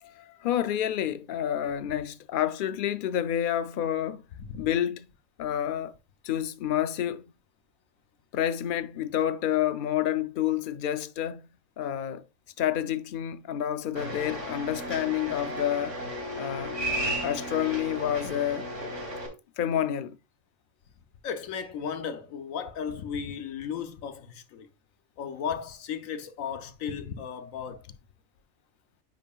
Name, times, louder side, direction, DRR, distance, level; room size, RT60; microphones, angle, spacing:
voice 1, 0.0-4.2 4.6-5.1 5.4-5.9 6.2-7.2 8.3-11.4 11.8-12.2 12.6-16.0 16.4-16.8 17.2-18.7 19.6-20.2, left 11 dB, 65° left, 0.5 m, -29 dB
sound 1, 14.0-19.3, equal, 60° right, 3.0 m, -34 dB
voice 2, 21.2-24.7 25.2-27.8, left 7 dB, 85° left, 1.2 m, -35 dB
9.1 x 5.4 x 2.3 m
omnidirectional pair, 1.4 m